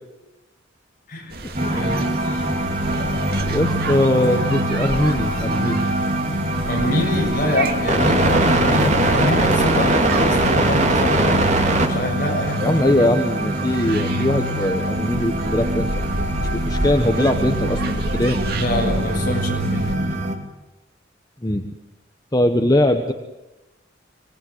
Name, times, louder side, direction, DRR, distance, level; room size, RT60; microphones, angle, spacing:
sound 1, 1.3-20.0, right 2 dB, 55° right, 2.4 m, -31 dB
sound 2, 1.5-20.3, right 1 dB, 40° right, 3.0 m, -22 dB
voice 1, 1.7-2.1 6.7-11.4 11.8-13.1 18.4-20.1, left 1 dB, 45° left, 1 dB, 7.1 m, -25 dB
voice 2, 3.5-5.9 12.6-15.9 16.4-18.4 20.0-20.2 21.4-21.7 22.3-23.1, left 1 dB, 20° left, 5 dB, 1.2 m, -21 dB
26.0 x 19.5 x 9.7 m, 1.0 s
head